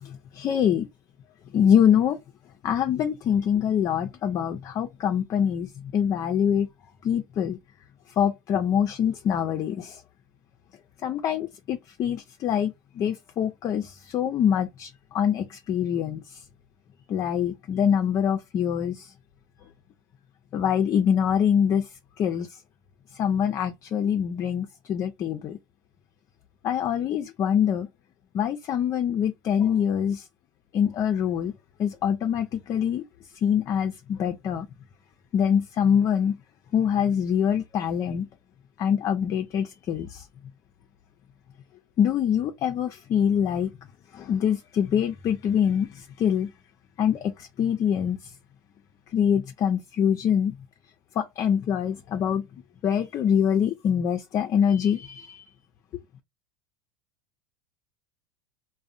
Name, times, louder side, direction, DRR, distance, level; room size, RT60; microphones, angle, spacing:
voice 1, 0.0-0.9 1.5-2.2 2.6-6.7 7.0-7.6 8.2-10.0 11.0-16.4 17.1-19.1 20.5-21.9 22.2-22.6 23.2-25.6 26.6-27.9 28.3-30.3 30.7-31.5 31.8-33.0 33.4-34.7 35.3-36.4 36.7-38.3 38.8-40.3 42.0-43.7 44.1-46.5 47.0-48.2 49.1-50.5 51.2-52.4 52.8-55.4, left 8 dB, 35° left, 0.4 m, -24 dB
2.5 x 2.0 x 2.5 m
hypercardioid pair, 110°, 10 cm